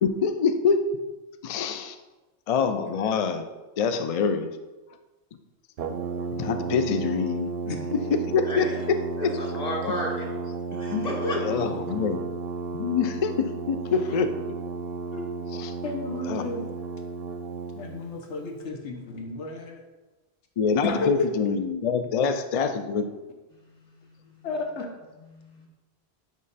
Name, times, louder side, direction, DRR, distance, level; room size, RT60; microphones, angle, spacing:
voice 1, 0.0-0.8 1.4-2.0 2.5-3.5 3.8-4.5 6.3-7.5 7.9-9.3 11.3-12.2 12.7-14.4 15.5-15.7 16.3-16.4 20.6-23.1, left 5 dB, 65° left, 8 dB, 0.3 m, -25 dB
Brass instrument, 5.8-18.0, right 4 dB, 70° right, 0.8 m, -33 dB
voice 2, 8.4-8.8 9.2-10.3 10.7-11.4 24.4-24.5 25.3-25.7, left 1 dB, 40° left, -2 dB, 1.6 m, -33 dB
voice 3, 10.9-11.4 15.1-15.3 15.8-16.7 17.8-19.8 20.8-21.3 24.4-24.9, left 3 dB, 85° left, 3 dB, 1.1 m, -32 dB
9.0 x 3.2 x 4.0 m, 1.1 s
omnidirectional pair, 1.1 m